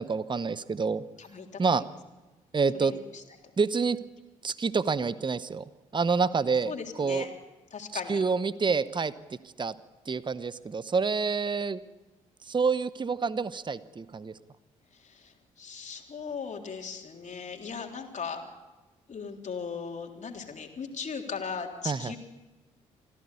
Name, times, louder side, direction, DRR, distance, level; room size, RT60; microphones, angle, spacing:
voice 1, 0.0-1.0 1.6-1.8 2.5-2.9 3.6-4.0 4.4-5.6 5.9-6.7 7.0-7.3 8.1-9.1 9.6-9.7 10.1-11.8 12.5-14.3 21.8-22.1, right 5 dB, 30° right, 16 dB, 0.9 m, -27 dB
voice 2, 1.2-1.8 2.7-3.2 6.7-7.3 7.7-8.2 15.0-18.4 19.1-22.2, left 5 dB, 45° left, 3 dB, 3.6 m, -38 dB
26.0 x 16.0 x 8.4 m, 1.2 s
figure-of-eight pair, 40°, 17 cm